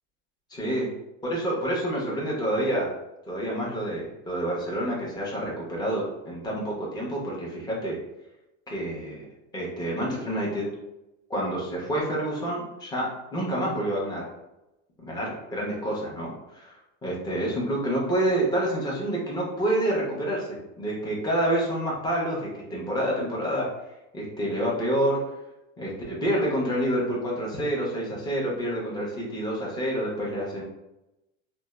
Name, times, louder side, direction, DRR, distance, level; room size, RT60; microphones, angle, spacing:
voice 1, 0.5-0.9 1.2-2.9 3.3-7.9 8.7-9.2 9.5-10.7 11.3-14.2 15.0-16.7 17.0-20.4 20.8-23.7 24.1-25.2 25.8-30.6, right 1 dB, 10° left, -4 dB, 0.7 m, -28 dB
2.7 x 2.1 x 2.2 m, 0.92 s
supercardioid pair, 125°, 39 cm